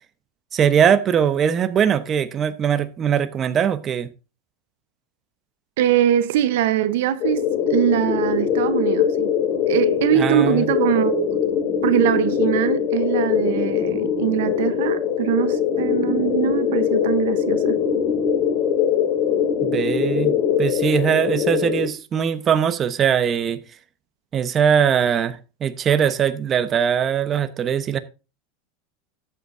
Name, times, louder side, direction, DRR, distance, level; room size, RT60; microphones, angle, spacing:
voice 1, 0.5-4.1 10.2-10.7 19.6-23.6 24.3-28.0, right 8 dB, 30° right, 0.9 m, -21 dB
voice 2, 5.8-7.4 7.7-9.3 9.7-11.3 11.8-17.8, right 12 dB, 80° right, 0.9 m, -22 dB
sound 1, 7.2-21.9, left 8 dB, 50° left, 2.5 m, -22 dB
13.5 x 8.4 x 2.6 m
supercardioid pair, 130°, 0 cm